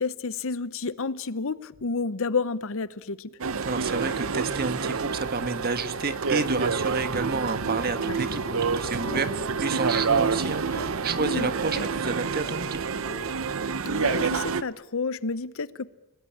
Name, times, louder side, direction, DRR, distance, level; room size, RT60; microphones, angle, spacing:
voice 1, 0.0-3.3 8.0-8.4 11.2-11.5 13.8-15.9, left 4 dB, 60° left, 0.8 m, -30 dB
sound 1, 3.4-14.6, right 5 dB, 65° right, 0.8 m, -28 dB
voice 2, 3.6-12.8, right 4 dB, 45° right, 1.5 m, -30 dB
sound 2, 8.4-10.2 10.7-13.4, left 1 dB, 40° left, 7.8 m, -42 dB
30.0 x 19.0 x 8.7 m
head